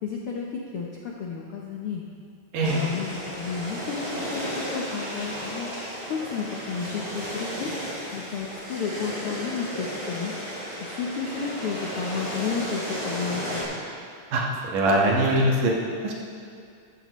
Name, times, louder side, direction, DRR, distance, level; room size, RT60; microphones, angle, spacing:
voice 1, 0.0-2.0 2.6-5.7 6.1-7.7 8.1-10.3 10.8-13.6, left 5 dB, 75° left, -1 dB, 1.3 m, -32 dB
sound 1, 2.6-13.6, equal, 20° right, 3.4 m, -34 dB
voice 2, 14.3-15.7 16.0-16.1, right 1 dB, 80° right, -2 dB, 3.1 m, -22 dB
14.0 x 13.0 x 3.1 m, 2.4 s
omnidirectional pair, 3.7 m